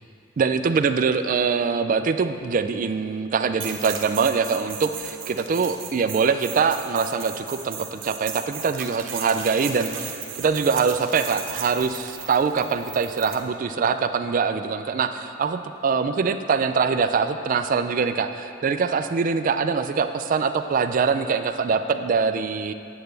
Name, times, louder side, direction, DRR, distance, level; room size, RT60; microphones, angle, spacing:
voice 1, 0.4-10.1 10.4-22.7, right 5 dB, 40° right, 9 dB, 0.3 m, -23 dB
sound 1, 3.6-13.4, right 7 dB, 65° right, 0.9 m, -36 dB
8.8 x 7.8 x 3.3 m, 2.6 s
head